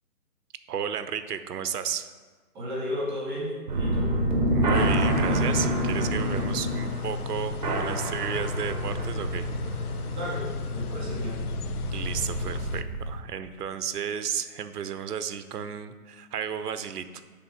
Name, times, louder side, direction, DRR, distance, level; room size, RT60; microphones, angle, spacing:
voice 1, 0.7-2.1 4.5-9.5 11.9-17.2, right 8 dB, 80° right, 11 dB, 0.7 m, -33 dB
voice 2, 2.5-4.1 10.1-10.4 10.7-11.3, equal, 15° right, -6 dB, 1.8 m, -33 dB
sound 1, 3.7-13.2, right 1 dB, 30° right, 0.9 m, -28 dB
sound 2, 4.7-12.8, left 6 dB, 70° left, 0.6 m, -35 dB
9.2 x 3.6 x 5.0 m, 1.4 s
hypercardioid pair, 155°, 46 cm